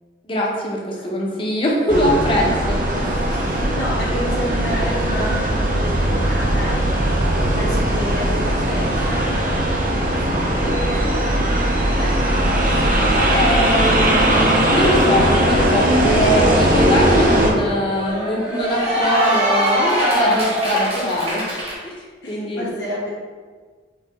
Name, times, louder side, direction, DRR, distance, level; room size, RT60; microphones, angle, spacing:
voice 1, 0.2-2.8 13.3-21.4 21.8-21.9 22.3-22.7, equal, 30° left, -2 dB, 0.8 m, -22 dB
sound 1, 1.9-17.5, right 1 dB, 50° right, 0.7 m, -19 dB
voice 2, 3.0-7.2 7.5-10.9 11.9-12.6 12.8-12.9 20.2-20.4 21.0-21.1 22.2-23.1, equal, 70° left, -6 dB, 0.9 m, -31 dB
Cheering / Applause, 16.4-21.8, equal, 35° right, 1.1 m, -23 dB
4.5 x 3.3 x 3.5 m, 1.5 s
head